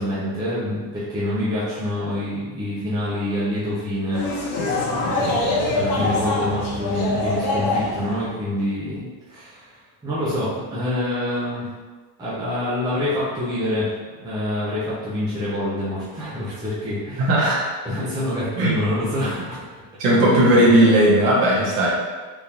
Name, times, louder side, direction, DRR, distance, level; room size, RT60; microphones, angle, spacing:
voice 1, 0.0-4.2 5.1-11.7 12.2-13.9 14.2-17.3 17.8-19.6, left 1 dB, 10° right, -10 dB, 0.6 m, -26 dB
sound 1, 4.1-8.3, left 2 dB, 45° left, 1.0 m, -24 dB
voice 2, 17.2-17.7 18.6-18.7 20.0-21.9, right 1 dB, 50° right, -6 dB, 1.2 m, -16 dB
3.6 x 2.5 x 3.0 m, 1.4 s
supercardioid pair, 140°, 46 cm